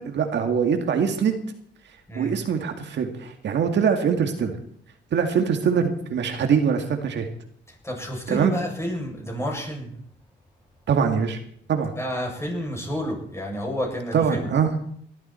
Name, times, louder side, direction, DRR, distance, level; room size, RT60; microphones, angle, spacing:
voice 1, 0.0-1.4 2.2-4.6 5.1-7.3 8.3-8.5 10.9-11.4 11.7-11.9 14.1-14.7, right 7 dB, 65° right, 5 dB, 2.1 m, -23 dB
voice 2, 7.8-9.9 11.9-14.5, equal, 15° left, 0 dB, 7.7 m, -30 dB
19.5 x 13.0 x 4.5 m, 0.64 s
cardioid pair, 90°, 20 cm